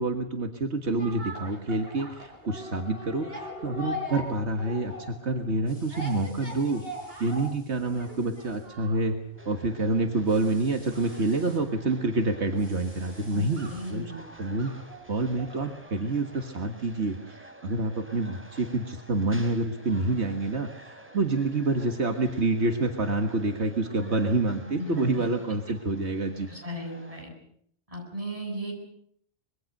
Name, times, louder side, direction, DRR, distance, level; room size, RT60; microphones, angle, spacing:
voice 1, 0.0-6.8 7.2-9.2 9.5-14.1 14.4-14.7 15.1-26.5, right 2 dB, 75° right, 5 dB, 1.9 m, -27 dB
sound 1, 0.8-16.0 16.4-16.5, left 1 dB, 60° right, 5.0 m, -42 dB
sound 2, 5.7-8.7 10.2-11.6 12.5-13.9, left 1 dB, 30° left, 7.0 m, -56 dB
sound 3, 9.4-27.2, right 1 dB, 10° right, 3.3 m, -50 dB
voice 2, 13.3-14.1 24.8-25.1 26.5-27.3 27.9-28.7, equal, 30° right, 0 dB, 8.0 m, -36 dB
25.0 x 22.0 x 6.6 m, 0.67 s
omnidirectional pair, 1.2 m